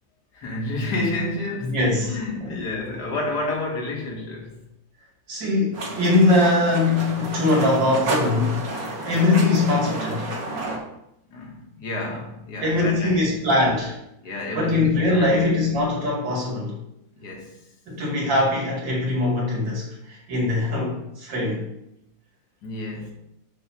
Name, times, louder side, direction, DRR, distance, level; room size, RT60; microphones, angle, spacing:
voice 1, 0.3-4.6 11.3-13.4 14.2-15.7 17.1-17.5 22.6-23.1, left 2 dB, 60° left, 0 dB, 2.1 m, -30 dB
voice 2, 1.6-2.5 5.3-8.7 9.0-10.3 12.6-14.0 14.5-16.8 17.9-21.7, left 2 dB, 70° right, -3 dB, 2.9 m, -22 dB
sound 1, 5.7-10.8, right 2 dB, 50° right, 2.1 m, -30 dB
6.3 x 4.5 x 6.0 m, 0.80 s
omnidirectional pair, 2.1 m